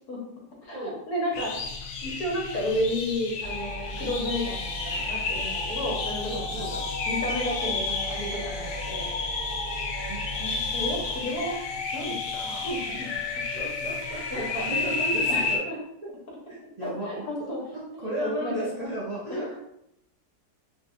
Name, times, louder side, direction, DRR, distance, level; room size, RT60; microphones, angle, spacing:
voice 1, 0.6-1.7 2.0-9.1 10.4-11.6 11.9-13.1 13.5-13.9 14.3-14.7 15.3-15.8 16.8-17.6 17.9-18.8 19.3-19.6, left 1 dB, 65° left, -3 dB, 1.4 m, -32 dB
sound 1, 1.3-15.6, left 4 dB, 90° left, 1.2 m, -31 dB
sound 2, 3.4-11.2, equal, 25° left, 0.8 m, -37 dB
voice 2, 6.3-6.8 9.9-10.2 13.6-15.6 16.5-17.1 17.7-19.6, right 1 dB, 60° right, -7 dB, 0.4 m, -34 dB
3.5 x 2.6 x 2.5 m, 0.79 s
omnidirectional pair, 1.8 m